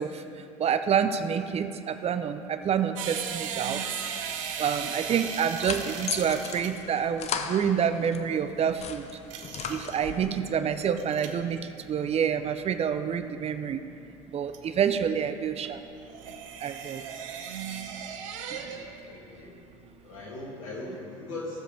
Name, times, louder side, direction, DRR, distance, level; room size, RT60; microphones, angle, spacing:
voice 1, 0.0-3.8 4.6-9.0 9.7-13.8 14.3-15.8 16.6-17.0 18.5-18.8, right 7 dB, 40° right, 10 dB, 0.6 m, -28 dB
sound 1, 3.0-19.1 19.3-20.2, right 7 dB, 80° right, 0.8 m, -38 dB
sound 2, 5.2-8.2 8.6-10.3, left 6 dB, 40° left, 0.8 m, -36 dB
voice 2, 10.0-10.6 18.7-19.6 20.0-21.6, left 2 dB, 85° left, -4 dB, 2.6 m, -40 dB
16.5 x 7.5 x 3.4 m, 2.6 s
hypercardioid pair, 70°, 16 cm